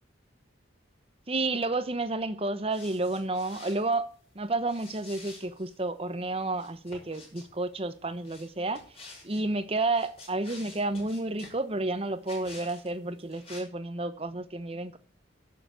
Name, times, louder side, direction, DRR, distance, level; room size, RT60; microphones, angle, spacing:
voice 1, 1.3-4.1 4.3-8.8 9.2-15.0, right 2 dB, 30° right, 1.0 m, -31 dB
sound 1, 2.7-3.9 4.6-5.8 6.5-7.5 8.2-9.4 9.9-11.6 12.2-12.9 13.2-13.6, left 2 dB, 30° left, 5.9 m, -49 dB
11.0 x 6.9 x 8.0 m
head